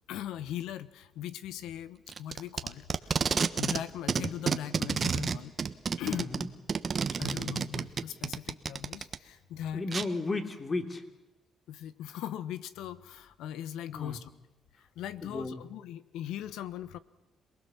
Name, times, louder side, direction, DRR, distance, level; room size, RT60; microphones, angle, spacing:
voice 1, 0.1-5.5 6.0-6.3 7.2-9.9 11.7-14.3 15.0-17.0, left 11 dB, 90° left, 15 dB, 1.2 m, -39 dB
Packing tape duct tape, 2.1-3.8 4.1-9.2 9.9-10.0, right 6 dB, 45° right, 1.2 m, -30 dB
voice 2, 6.1-6.5 9.7-11.0 13.9-14.2 15.2-15.6, left 3 dB, 30° left, 7 dB, 3.1 m, -34 dB
27.0 x 20.0 x 7.3 m, 1.0 s
cardioid pair, 90°, 0 cm